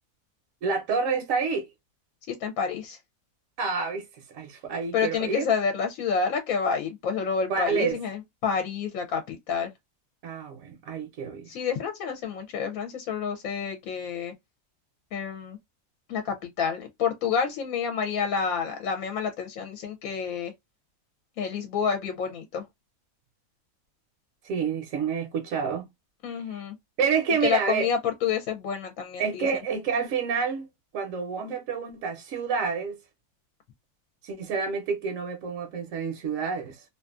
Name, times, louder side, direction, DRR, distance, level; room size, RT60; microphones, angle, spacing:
voice 1, 0.6-1.7 3.6-5.5 7.5-8.0 10.2-11.5 24.4-25.8 26.5-26.6 27.0-27.9 29.2-30.7 30.9-33.0 34.2-36.8, right 5 dB, 70° right, 0.9 m, -28 dB
voice 2, 2.3-3.0 4.9-9.7 11.5-14.3 15.1-15.6 16.1-20.5 21.4-22.6 26.2-26.8 27.4-29.6, left 6 dB, 70° left, 1.0 m, -29 dB
2.6 x 2.4 x 2.3 m
omnidirectional pair, 1.6 m